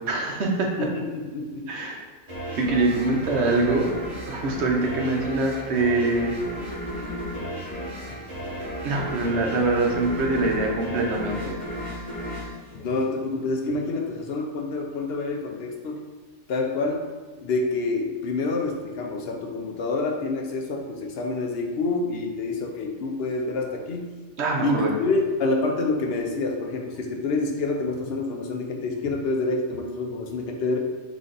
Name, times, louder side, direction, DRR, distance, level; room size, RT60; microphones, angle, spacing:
voice 1, 0.0-0.7 1.7-2.0 2.5-3.9 4.3-6.3 7.0-7.1 8.8-11.6 24.4-24.9, right 2 dB, 65° right, 0 dB, 1.0 m, -24 dB
voice 2, 0.8-1.7 12.7-16.0 16.5-17.1 17.4-24.1 24.6-30.8, left 3 dB, 60° left, 2 dB, 0.8 m, -27 dB
sound 1, 2.3-13.5, equal, 35° right, 1.4 m, -34 dB
4.0 x 3.3 x 3.9 m, 1.4 s
omnidirectional pair, 1.3 m